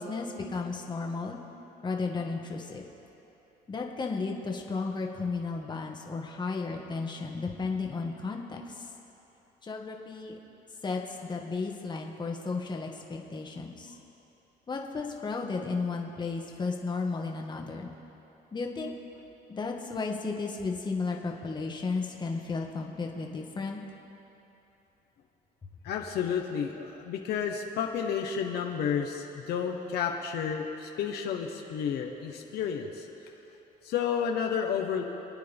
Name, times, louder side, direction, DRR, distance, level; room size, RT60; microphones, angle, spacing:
voice 1, 0.0-1.4 1.8-2.8 3.7-8.6 9.6-10.4 10.8-13.9 14.7-17.9 18.5-18.9 19.5-23.8, left 4 dB, 25° left, 1 dB, 1.6 m, -34 dB
voice 2, 25.8-33.1 33.8-35.0, left 7 dB, 75° left, 2 dB, 1.1 m, -31 dB
27.5 x 9.4 x 3.6 m, 3.0 s
cardioid pair, 110°, 17 cm